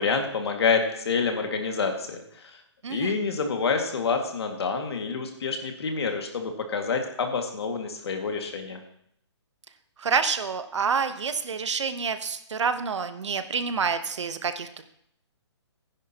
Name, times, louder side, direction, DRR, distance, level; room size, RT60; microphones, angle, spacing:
voice 1, 0.0-2.6 2.9-8.8, left 5 dB, 60° left, 3 dB, 2.1 m, -27 dB
voice 2, 2.8-3.2 10.0-14.8, right 5 dB, 80° right, 10 dB, 1.1 m, -28 dB
15.0 x 10.0 x 3.0 m, 0.72 s
hypercardioid pair, 170°, 15 cm